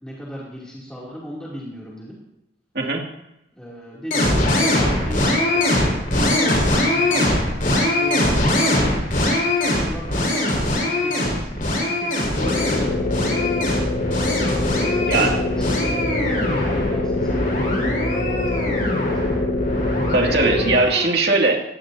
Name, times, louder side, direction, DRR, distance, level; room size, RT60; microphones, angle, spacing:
voice 1, 0.0-2.2 3.5-7.4 7.7-9.0 9.6-13.6 14.7-19.4, equal, 5° left, -7 dB, 3.0 m, -36 dB
sound 1, 4.1-21.1, left 1 dB, 45° left, 5.2 m, -22 dB
sound 2, 12.4-20.8, left 2 dB, 85° left, 2.9 m, -24 dB
voice 2, 20.1-21.6, right 3 dB, 60° right, 0 dB, 2.5 m, -19 dB
20.0 x 17.0 x 2.8 m, 0.87 s
head